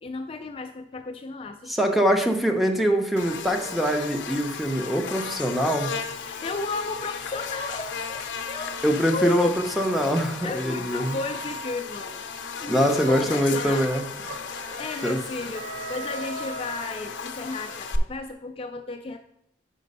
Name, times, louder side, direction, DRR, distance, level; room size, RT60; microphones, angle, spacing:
voice 1, 0.0-1.9 6.2-8.8 9.1-9.6 10.4-12.2 12.6-13.9 14.6-19.2, left 3 dB, 30° left, 6 dB, 0.3 m, -34 dB
voice 2, 1.7-5.9 8.8-11.2 12.7-14.1 15.0-15.2, equal, ahead, 4 dB, 0.7 m, -23 dB
Buzz, 3.2-18.0, left 5 dB, 80° left, 0.6 m, -35 dB
sound 1, 12.7-17.5, right 3 dB, 80° right, 1.1 m, -40 dB
5.2 x 5.0 x 5.3 m, 0.81 s
head